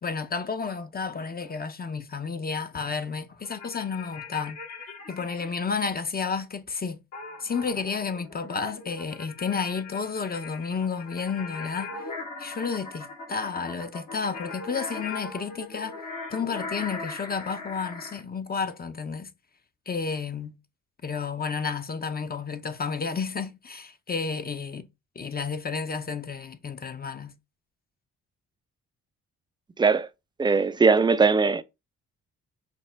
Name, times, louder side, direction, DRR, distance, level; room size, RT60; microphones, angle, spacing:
voice 1, 0.0-4.6 5.1-7.0 7.4-12.1 12.4-16.0 16.3-19.3 19.9-20.6 21.0-24.9 25.2-27.3, left 5 dB, 30° left, 0.6 m, -31 dB
sound 1, 3.4-5.5 7.1-18.2, left 3 dB, 65° left, 1.5 m, -40 dB
voice 2, 29.8-30.1 30.4-31.6, right 4 dB, 15° right, 0.4 m, -20 dB
5.1 x 2.1 x 3.3 m
hypercardioid pair, 45°, 33 cm